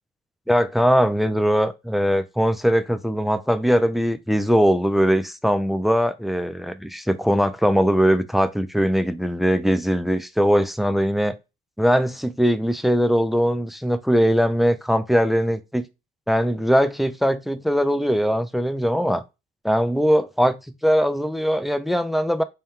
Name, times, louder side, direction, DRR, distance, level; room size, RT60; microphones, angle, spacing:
voice 1, 0.5-11.4 11.8-15.8 16.3-19.2 19.6-20.6 20.8-22.4, equal, ahead, 0.4 m, -20 dB
3.5 x 2.2 x 4.3 m
cardioid pair, 90°, 20 cm